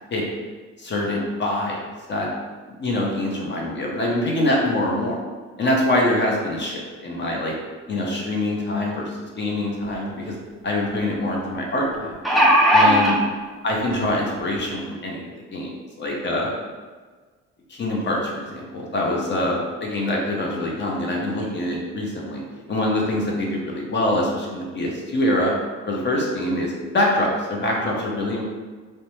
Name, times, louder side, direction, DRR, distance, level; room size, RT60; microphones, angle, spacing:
voice 1, 0.8-2.3 2.7-5.2 5.6-7.5 7.9-10.3 10.6-12.1 12.7-13.2 13.6-15.3 15.5-15.7 16.0-16.5 17.7-22.4 22.7-25.5 25.9-28.5, left 1 dB, 35° left, -2 dB, 0.7 m, -24 dB
sound 1, 9.8-9.9 10.3-10.4 11.9-13.1 14.1-14.2 14.6-14.7, equal, ahead, 0.4 m, -16 dB
2.6 x 2.1 x 3.0 m, 1.4 s
cardioid pair, 90°, 30 cm